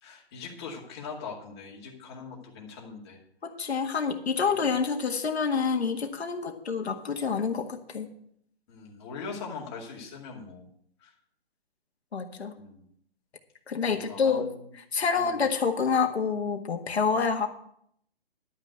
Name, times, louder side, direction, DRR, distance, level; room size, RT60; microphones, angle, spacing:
voice 1, 0.0-3.2 8.7-10.7 11.0-11.1 12.6-12.9 13.8-14.6 15.1-15.4, left 4 dB, 25° left, -2 dB, 2.3 m, -41 dB
voice 2, 3.4-8.1 12.1-12.5 13.7-14.5 14.7-17.5, left 5 dB, 80° left, 4 dB, 1.8 m, -27 dB
11.5 x 5.8 x 7.8 m, 0.70 s
hypercardioid pair, 165°, 32 cm